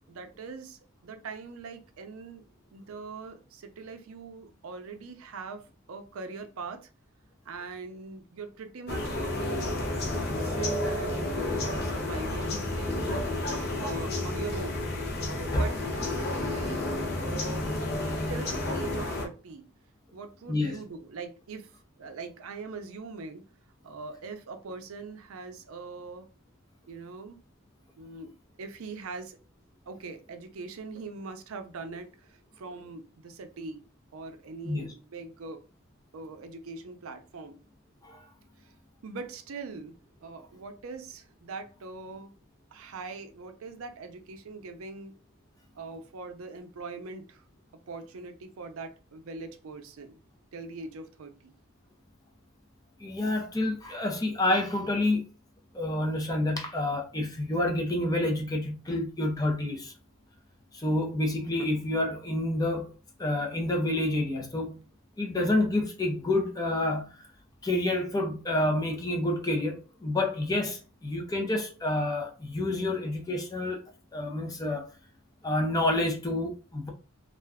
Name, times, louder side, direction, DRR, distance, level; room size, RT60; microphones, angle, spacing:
voice 1, 0.0-2.4 2.7-5.6 5.9-6.9 7.4-9.8 10.1-13.2 13.8-14.8 15.3-16.9 17.2-17.7 18.3-19.7 20.1-21.7 22.0-23.4 23.8-26.3 26.9-27.4 28.0-28.3 28.6-29.4 29.9-33.8 34.1-35.6 36.1-37.6 38.6-38.7 39.0-39.9 40.2-42.3 42.7-45.1 45.8-47.4 47.9-50.2 50.5-51.5, right 4 dB, 75° right, 0.5 m, -42 dB
sound 1, 8.9-19.2, left 2 dB, 50° left, 0.7 m, -31 dB
voice 2, 20.5-20.8 34.6-34.9 38.0-38.2 53.0-55.2 55.7-59.9 60.7-62.9 63.2-64.8 65.2-67.2 67.6-73.8 74.1-74.9 75.4-76.9, left 1 dB, 15° left, 0.5 m, -28 dB
2.4 x 2.2 x 3.4 m
head